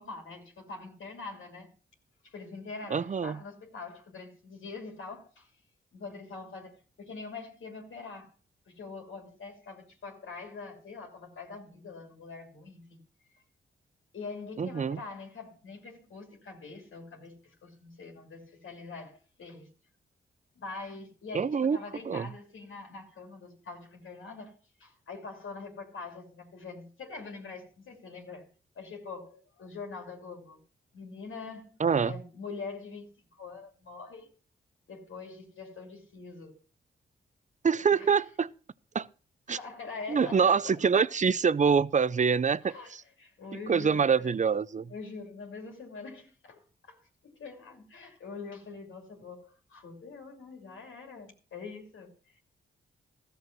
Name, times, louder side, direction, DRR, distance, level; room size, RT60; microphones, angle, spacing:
voice 1, 0.0-1.7 2.2-5.5 5.9-8.3 8.7-13.0 14.1-19.7 20.6-28.5 28.8-30.6 30.9-33.0 33.4-34.3 34.9-36.6 37.9-38.1 39.5-41.1 42.6-44.3 44.9-52.4, left 4 dB, 80° left, 2.7 m, -44 dB
voice 2, 2.9-3.4 14.6-15.0 21.3-21.8 22.1-22.3 31.8-32.1 37.6-38.5 38.9-39.0 39.5-39.6 40.1-43.0 43.7-44.9, right 6 dB, 35° right, 0.6 m, -25 dB
14.0 x 6.8 x 5.9 m
cardioid pair, 70°, 20 cm